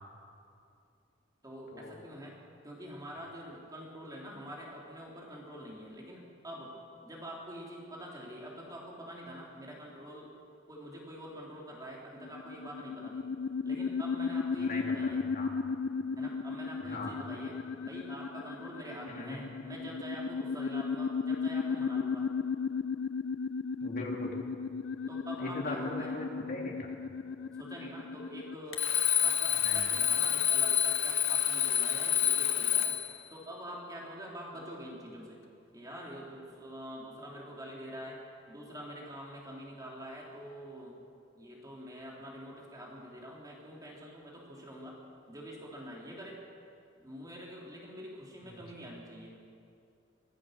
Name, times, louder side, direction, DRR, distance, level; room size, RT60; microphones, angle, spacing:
voice 1, 1.4-2.4 2.6-6.7 7.0-10.3 10.7-13.3 13.6-15.2 16.2-22.3 25.1-26.1 27.6-28.9 29.2-33.0 33.3-35.4 35.7-38.2 38.5-41.0 41.4-45.0 45.3-46.4 47.0-49.4, equal, 20° right, -3 dB, 3.3 m, -45 dB
sound 1, 12.2-28.5, left 5 dB, 65° left, 0.4 m, -35 dB
voice 2, 14.6-15.5 16.8-17.2 19.1-19.5 23.8-24.3 25.4-26.9 29.5-29.9 48.4-48.6, left 2 dB, 50° left, -1 dB, 3.4 m, -40 dB
Alarm, 28.7-33.2, left 10 dB, 90° left, 1.8 m, -28 dB
24.5 x 16.0 x 6.6 m, 2.5 s
head